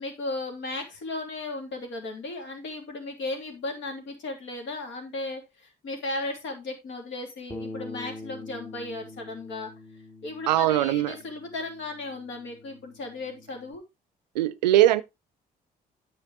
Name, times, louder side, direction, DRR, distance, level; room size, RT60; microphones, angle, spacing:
voice 1, 0.0-9.7 10.2-13.8, left 2 dB, 65° left, 2.9 m, -35 dB
Bass guitar, 7.5-13.7, left 2 dB, 20° left, 1.5 m, -44 dB
voice 2, 10.5-11.2 14.4-15.0, right 14 dB, 85° right, 0.4 m, -21 dB
9.7 x 7.2 x 3.6 m
hypercardioid pair, 45°, 21 cm